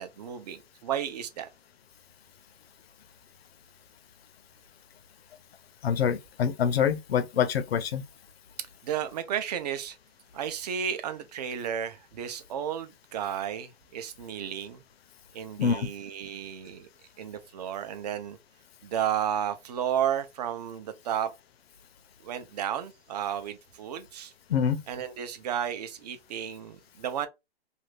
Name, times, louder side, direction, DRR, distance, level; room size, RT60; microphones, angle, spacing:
voice 1, 0.0-1.5 8.6-10.0 10.3-14.8 15.3-16.9 17.2-18.4 18.8-21.3 22.2-24.3 24.9-27.3, right 9 dB, 40° right, 0.6 m, -33 dB
voice 2, 5.8-8.0 15.6-15.9 24.5-24.8, left 7 dB, 75° left, 0.6 m, -25 dB
2.6 x 2.4 x 3.3 m
hypercardioid pair, 150°, 31 cm